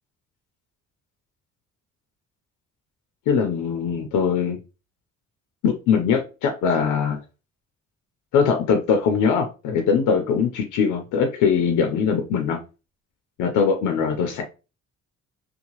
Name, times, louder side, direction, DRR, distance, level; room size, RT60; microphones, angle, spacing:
voice 1, 3.3-4.6 5.6-7.2 8.3-12.6 13.4-14.4, left 6 dB, 90° left, 0.6 m, -21 dB
2.7 x 2.2 x 2.9 m
cardioid pair, 90°, 30 cm